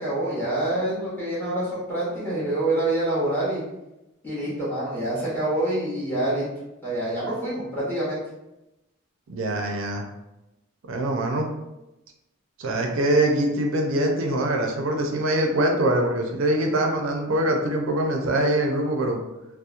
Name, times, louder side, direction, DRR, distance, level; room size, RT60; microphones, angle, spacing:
voice 1, 0.0-3.6 4.2-6.4 6.8-8.2, right 1 dB, 10° left, -8 dB, 0.7 m, -26 dB
voice 2, 9.3-10.0 10.9-11.5 12.6-19.2, right 1 dB, 70° right, 2 dB, 0.4 m, -23 dB
2.8 x 2.0 x 2.3 m, 0.94 s
head